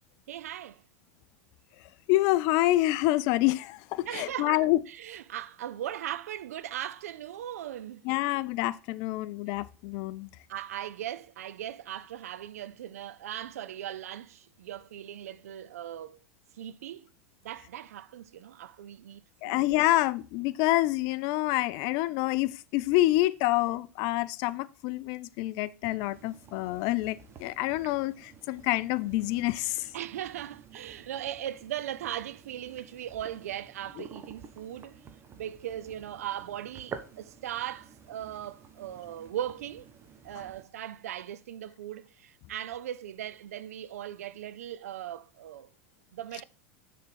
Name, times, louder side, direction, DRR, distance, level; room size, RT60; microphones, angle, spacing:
voice 1, 0.3-0.8 4.1-8.1 10.5-16.2 16.6-17.1 17.4-19.7 29.9-35.0 35.3-39.9 40.2-45.7 46.1-46.4, right 11 dB, 80° right, 0.4 m, -39 dB
voice 2, 2.1-4.8 8.0-10.3 19.4-29.9, left 17 dB, 55° left, 0.5 m, -27 dB
sound 1, 26.0-40.7, right 6 dB, 30° right, 1.0 m, -50 dB
6.6 x 3.7 x 5.8 m
hypercardioid pair, 105°, 8 cm